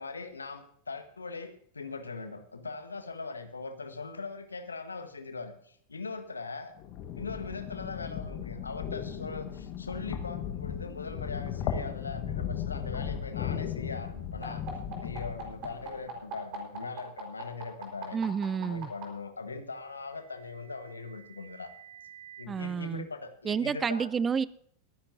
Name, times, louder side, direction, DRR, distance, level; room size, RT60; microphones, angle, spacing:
voice 1, 0.0-6.7 7.2-14.6 15.0-18.2 18.5-21.7 22.4-24.1, left 4 dB, 75° left, 1.3 m, -40 dB
sound 1, 6.8-16.0, left 9 dB, 40° left, 1.6 m, -36 dB
sound 2, 14.4-19.0 20.2-22.4, right 10 dB, 40° right, 4.5 m, -44 dB
voice 2, 18.1-18.9 22.5-23.1 23.4-24.4, right 6 dB, 20° right, 0.4 m, -30 dB
21.5 x 10.5 x 2.7 m
figure-of-eight pair, 90°, 0 cm